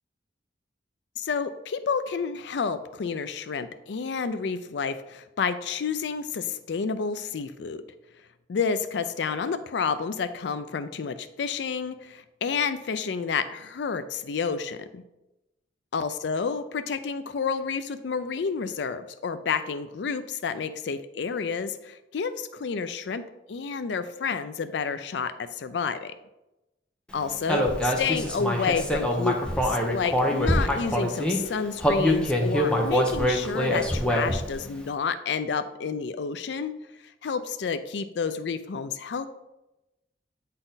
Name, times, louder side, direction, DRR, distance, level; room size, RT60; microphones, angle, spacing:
voice 1, 1.2-7.8 8.5-15.0 15.9-23.2 23.5-26.1 27.1-36.7 37.2-39.3, left 5 dB, 75° left, 12 dB, 0.4 m, -30 dB
Human voice, 27.5-31.4 31.8-34.5, equal, 5° left, 0.7 m, -24 dB
8.8 x 4.1 x 3.9 m, 0.97 s
head